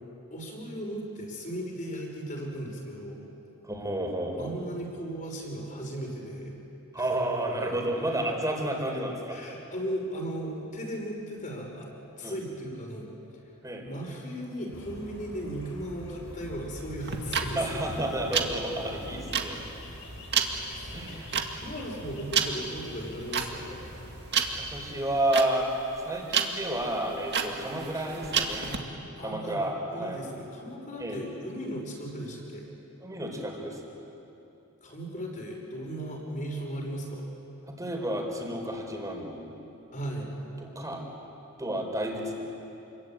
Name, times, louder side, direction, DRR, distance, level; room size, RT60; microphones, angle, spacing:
voice 1, 0.3-3.2 4.3-6.5 6.9-7.1 9.3-11.9 12.2-13.1 13.8-17.8 20.5-21.4 21.6-23.8 29.2-32.7 34.8-37.3 39.9-40.3, right 1 dB, 40° left, 0 dB, 6.0 m, -37 dB
voice 2, 3.6-4.5 6.9-9.4 12.2-12.3 13.6-13.9 17.5-19.6 20.9-21.3 24.5-25.7 26.0-28.9 29.2-30.2 31.0-31.2 33.0-33.8 37.6-39.6 40.6-41.0 41.6-42.3, right 1 dB, 15° right, 1 dB, 4.3 m, -31 dB
sound 1, 14.7-24.9, equal, 70° left, 4.3 m, -44 dB
sound 2, 17.0-28.8, right 7 dB, 50° right, 2.0 m, -31 dB
29.0 x 22.5 x 9.1 m, 2.9 s
head